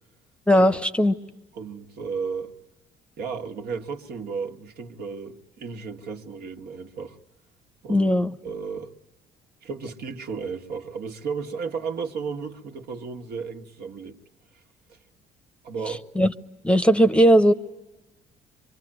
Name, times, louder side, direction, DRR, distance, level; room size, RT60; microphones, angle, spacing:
voice 1, 0.5-1.1 7.9-8.3 16.2-16.3 16.6-17.5, equal, 5° left, 0.9 m, -17 dB
voice 2, 1.5-2.5 3.2-7.2 7.8-8.1 8.4-8.9 9.6-14.2 14.9-15.0 15.6-16.0, right 5 dB, 70° right, 1.9 m, -34 dB
25.5 x 24.5 x 9.2 m
cardioid pair, 110°, 17 cm